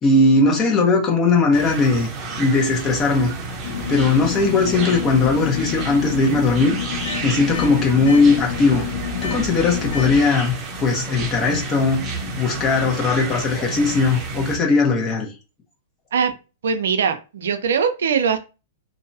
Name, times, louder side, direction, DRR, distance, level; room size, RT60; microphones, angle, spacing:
voice 1, 0.0-2.1 2.4-3.3 3.9-6.8 7.2-8.8 9.2-12.0 12.4-15.3, left 3 dB, 25° left, 1.0 m, -18 dB
sound 1, 1.5-14.6, right 3 dB, 30° right, 0.8 m, -31 dB
sound 2, 3.6-10.2, left 8 dB, 65° left, 0.5 m, -29 dB
voice 2, 16.6-18.4, right 6 dB, 75° right, 0.5 m, -21 dB
2.7 x 2.2 x 2.7 m
hypercardioid pair, 125°, 0 cm